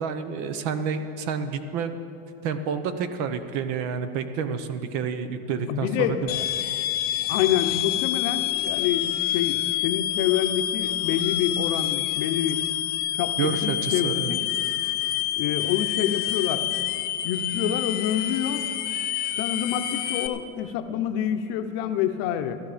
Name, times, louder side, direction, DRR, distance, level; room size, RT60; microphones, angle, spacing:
voice 1, 0.0-1.9 2.4-6.1 13.4-14.3, right 6 dB, 50° right, 10 dB, 1.0 m, -29 dB
voice 2, 5.7-6.4 7.3-12.6 13.2-14.4 15.4-16.6 17.2-18.7 19.4-22.6, left 10 dB, 55° left, 8 dB, 0.9 m, -27 dB
sound 1, 6.3-20.3, left 13 dB, 30° left, 0.4 m, -27 dB
14.5 x 12.5 x 5.1 m, 2.6 s
supercardioid pair, 150°, 32 cm